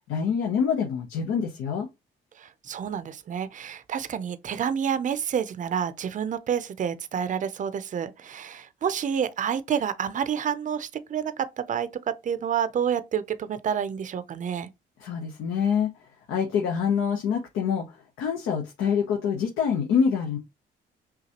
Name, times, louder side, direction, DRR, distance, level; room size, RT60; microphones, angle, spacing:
voice 1, 0.1-1.9 15.0-15.9 16.3-20.4, left 7 dB, 90° left, 0.8 m, -26 dB
voice 2, 2.4-14.7, right 8 dB, 40° right, 0.5 m, -29 dB
5.8 x 2.3 x 2.9 m
cardioid pair, 90°, 20 cm